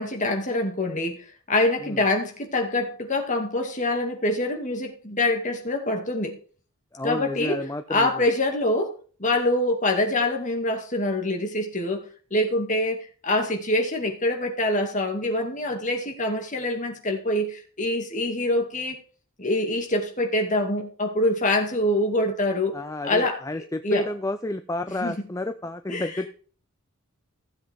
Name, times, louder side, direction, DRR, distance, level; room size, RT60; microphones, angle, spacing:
voice 1, 0.0-6.4 7.0-7.6 7.9-8.9 9.2-19.0 19.4-22.8 23.0-23.4 23.8-24.0 24.9-25.2 25.9-26.1, left 1 dB, 35° left, 2.3 m, -25 dB
voice 2, 6.9-8.3 22.7-26.3, left 2 dB, 15° left, 0.5 m, -31 dB
16.0 x 7.7 x 3.6 m
head